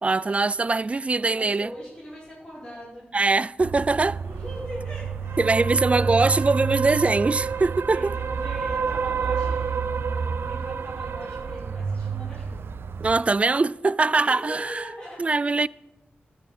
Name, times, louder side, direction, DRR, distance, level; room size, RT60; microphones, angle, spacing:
voice 1, 0.0-1.7 3.1-4.2 5.4-8.2 13.0-14.8 15.2-15.7, right 3 dB, 35° right, 0.4 m, -22 dB
voice 2, 0.9-3.1 4.2-5.5 5.8-6.1 7.9-12.7 14.0-15.2, equal, 25° left, 5.7 m, -41 dB
sound 1, 3.6-13.2, right 5 dB, 80° right, 0.7 m, -28 dB
13.5 x 9.2 x 8.1 m
cardioid pair, 70°, 4 cm